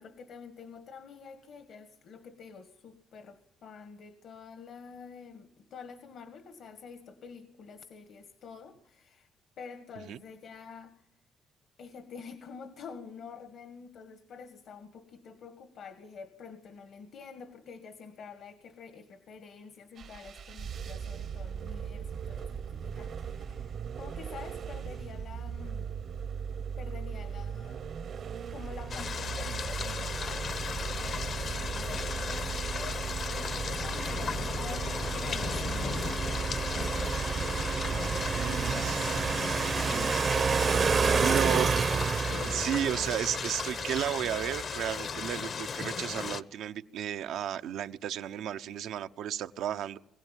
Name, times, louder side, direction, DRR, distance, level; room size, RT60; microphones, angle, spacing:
voice 1, 0.0-9.3 9.6-11.1 11.8-26.0 26.8-27.9 28.5-30.3 30.9-37.1 38.5-39.0 39.9-40.4 40.9-41.8, left 5 dB, 70° left, 10 dB, 1.8 m, -47 dB
sound 1, 20.0-39.3, right 7 dB, 60° right, 1.0 m, -38 dB
sound 2, 28.8-44.9, right 5 dB, 45° right, 0.8 m, -32 dB
sound 3, 28.9-46.4, left 6 dB, 55° left, 1.0 m, -36 dB
voice 2, 38.3-39.0 41.1-41.7 42.4-50.0, right 10 dB, 80° right, 9 dB, 0.8 m, -33 dB
22.5 x 16.0 x 9.2 m, 0.75 s
cardioid pair, 90°, 0 cm